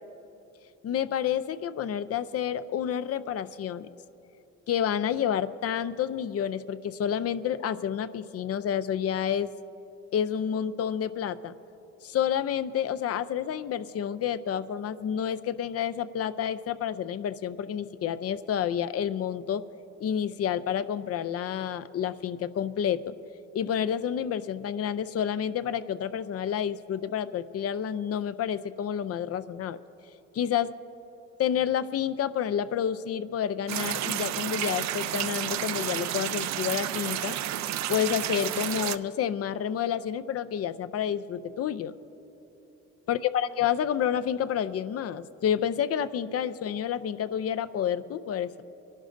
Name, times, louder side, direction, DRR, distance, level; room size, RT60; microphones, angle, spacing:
voice 1, 0.8-3.9 4.7-9.5 10.1-11.5 12.0-19.6 20.0-23.1 23.5-29.8 30.3-30.7 31.4-37.4 37.9-42.0 43.1-48.6, left 9 dB, 50° left, 13 dB, 0.5 m, -29 dB
sound 1, 33.7-39.0, right 12 dB, 65° right, 0.5 m, -31 dB
28.5 x 11.5 x 2.6 m, 3.0 s
cardioid pair, 90°, 30 cm